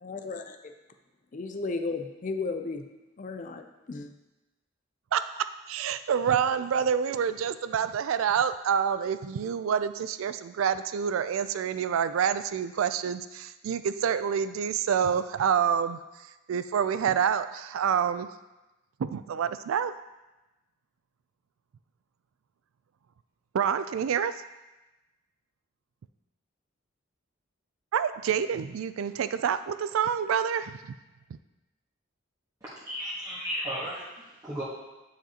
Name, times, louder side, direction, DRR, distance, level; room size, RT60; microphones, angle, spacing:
voice 1, 0.0-0.7 1.3-2.9 3.2-4.1, left 3 dB, 40° left, 6 dB, 0.4 m, -34 dB
voice 2, 5.1-16.0 16.5-18.3 19.0-19.9 23.5-24.3 27.9-30.9, right 7 dB, 85° right, 12 dB, 0.3 m, -27 dB
voice 3, 32.9-34.6, equal, 15° right, -9 dB, 1.3 m, -34 dB
9.0 x 5.1 x 2.9 m, 1.0 s
head